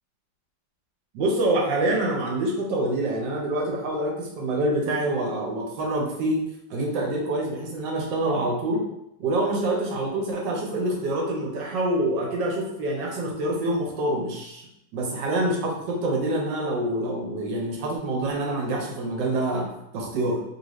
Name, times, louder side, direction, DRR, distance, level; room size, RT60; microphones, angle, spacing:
voice 1, 1.1-6.4 6.7-8.8 9.2-14.6 14.9-19.7 19.9-20.4, right 1 dB, 70° right, -1 dB, 1.4 m, -26 dB
3.4 x 2.6 x 3.0 m, 0.81 s
omnidirectional pair, 2.0 m